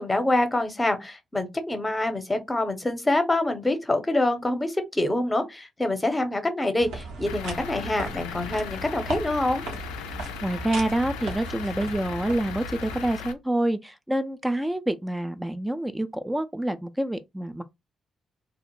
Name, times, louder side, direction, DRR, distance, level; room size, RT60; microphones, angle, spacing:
voice 1, 0.0-9.6, left 1 dB, 20° left, 0.8 m, -26 dB
sound 1, 6.8-13.1, right 3 dB, 70° right, 0.7 m, -37 dB
Truck / Idling, 7.3-13.3, left 11 dB, 75° left, 0.3 m, -38 dB
voice 2, 10.4-17.6, right 1 dB, 10° right, 0.4 m, -27 dB
2.4 x 2.1 x 3.0 m
hypercardioid pair, 40°, 0 cm